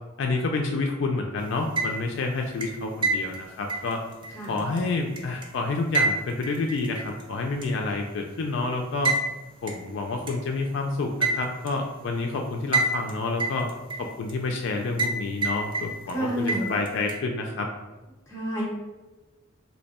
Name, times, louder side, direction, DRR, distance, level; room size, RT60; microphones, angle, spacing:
voice 1, 0.2-4.0 4.4-9.2 9.6-13.7 14.0-17.7, left 3 dB, 60° left, 2 dB, 0.3 m, -29 dB
sound 1, 1.5-2.2 2.6-5.5 5.9-7.2 7.6-7.7 9.0-9.3 9.7-9.8 10.3-10.4 11.2-11.7 12.7-13.1 13.4-14.3 15.0-15.2 15.4-16.1 16.5-17.2, right 3 dB, 25° right, 0.3 m, -27 dB
voice 2, 16.1-16.7 18.3-18.6, right 1 dB, 15° left, -4 dB, 0.9 m, -29 dB
2.8 x 2.2 x 4.1 m, 1.1 s
head